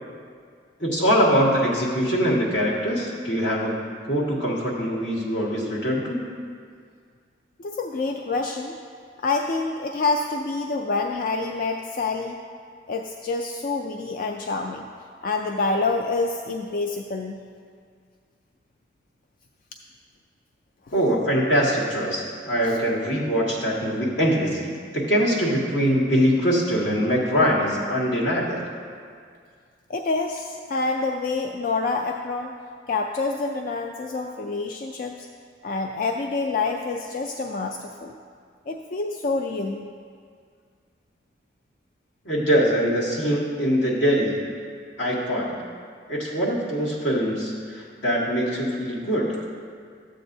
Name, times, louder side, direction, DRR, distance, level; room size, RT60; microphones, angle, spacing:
voice 1, 0.8-3.8 4.1-6.2 20.9-28.6 42.2-44.4 45.0-45.6 46.1-49.4, equal, 80° left, -6 dB, 1.9 m, -23 dB
voice 2, 7.6-8.8 9.2-12.4 12.9-14.9 15.2-17.4 20.9-21.0 22.6-22.8 29.9-32.5 32.9-35.3 35.6-38.1 38.7-39.9, left 3 dB, 45° left, 3 dB, 0.3 m, -27 dB
12.5 x 7.6 x 2.7 m, 2.1 s
head